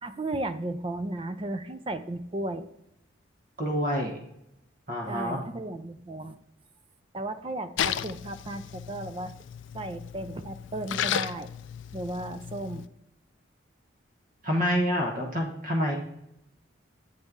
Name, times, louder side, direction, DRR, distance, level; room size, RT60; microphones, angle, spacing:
voice 1, 0.0-2.7 5.1-6.4 7.1-9.3 9.7-11.5 11.9-12.8, right 1 dB, 25° right, 10 dB, 0.4 m, -34 dB
voice 2, 3.6-4.2 4.9-5.4 14.4-16.0, equal, 45° right, 0 dB, 1.1 m, -27 dB
Splash splatter, 7.8-12.9, left 9 dB, 70° left, 0.3 m, -34 dB
8.0 x 4.2 x 3.5 m, 0.83 s
head